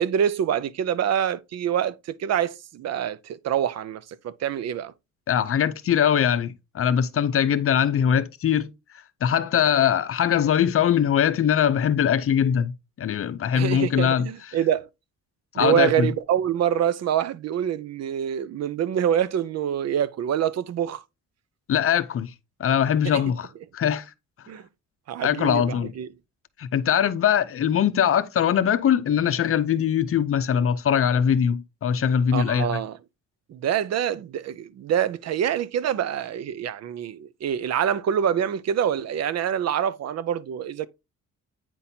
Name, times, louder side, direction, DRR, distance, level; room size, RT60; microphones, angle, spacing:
voice 1, 0.0-4.9 13.5-14.9 15.6-21.0 23.0-23.2 24.5-24.6 25.1-26.1 32.3-33.0 33.5-40.9, right 9 dB, 60° right, 0.6 m, -25 dB
voice 2, 5.3-8.7 9.2-14.3 15.5-16.1 21.7-22.3 22.6-23.5 23.7-24.0 25.2-25.9 26.6-32.8, left 8 dB, 45° left, 0.6 m, -22 dB
9.0 x 4.1 x 2.7 m
cardioid pair, 90°, 30 cm